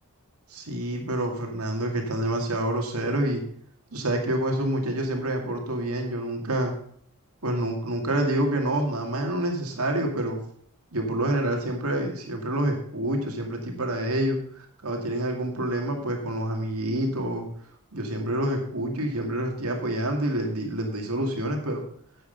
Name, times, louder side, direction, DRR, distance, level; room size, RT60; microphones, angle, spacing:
voice 1, 0.5-3.4 3.9-6.8 7.4-10.4 10.9-17.5 17.9-21.8, right 1 dB, 75° right, 2 dB, 2.3 m, -27 dB
9.8 x 7.7 x 5.3 m, 0.63 s
head